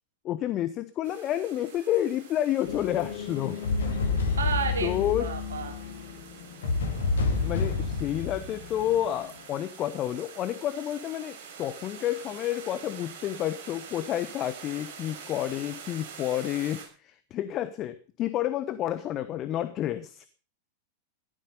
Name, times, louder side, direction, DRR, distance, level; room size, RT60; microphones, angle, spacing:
voice 1, 0.2-3.6 4.8-5.3 7.4-20.2, left 12 dB, 35° left, 12 dB, 1.1 m, -30 dB
sound 1, 1.0-16.9, right 6 dB, 50° right, 6.9 m, -46 dB
sound 2, 2.6-9.4, left 4 dB, 65° left, 2.7 m, -30 dB
voice 2, 4.4-5.7, right 5 dB, 70° right, 4 dB, 3.1 m, -31 dB
16.0 x 13.0 x 5.5 m, 0.39 s
figure-of-eight pair, 90°, 0 cm